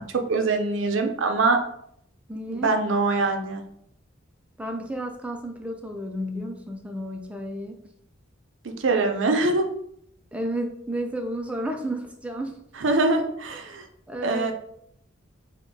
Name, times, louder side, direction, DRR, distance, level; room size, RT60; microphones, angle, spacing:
voice 1, 0.0-1.6 2.5-3.6 8.8-9.7 12.8-13.9 14.2-14.5, right 3 dB, 70° right, 6 dB, 0.5 m, -23 dB
voice 2, 2.3-2.7 4.6-7.8 10.3-12.6 14.1-14.5, right 1 dB, 5° right, 3 dB, 0.4 m, -32 dB
3.5 x 2.5 x 3.8 m, 0.71 s
head